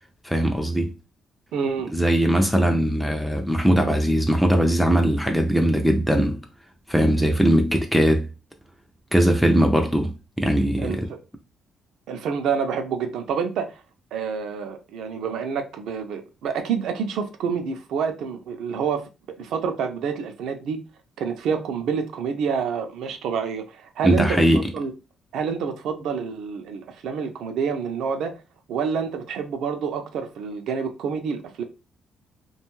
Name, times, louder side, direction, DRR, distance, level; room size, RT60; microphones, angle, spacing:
voice 1, 0.2-0.9 1.9-6.4 6.9-8.3 9.1-11.1 24.0-24.7, equal, ahead, 0.4 m, -20 dB
voice 2, 1.5-1.9 10.8-11.2 12.1-13.8 14.1-19.1 19.4-20.8 21.2-24.4 24.7-24.9 25.3-28.4 28.7-31.6, right 6 dB, 80° right, 0.5 m, -28 dB
2.5 x 2.3 x 3.0 m
cardioid pair, 90°, 0 cm